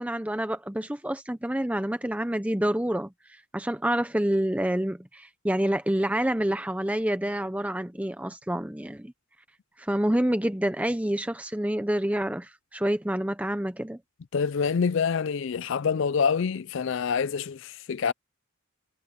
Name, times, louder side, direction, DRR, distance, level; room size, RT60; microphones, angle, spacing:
voice 1, 0.0-9.1 9.8-14.0, right 1 dB, 5° right, 0.7 m, -28 dB
voice 2, 14.3-18.1, left 6 dB, 60° left, 0.4 m, -26 dB
head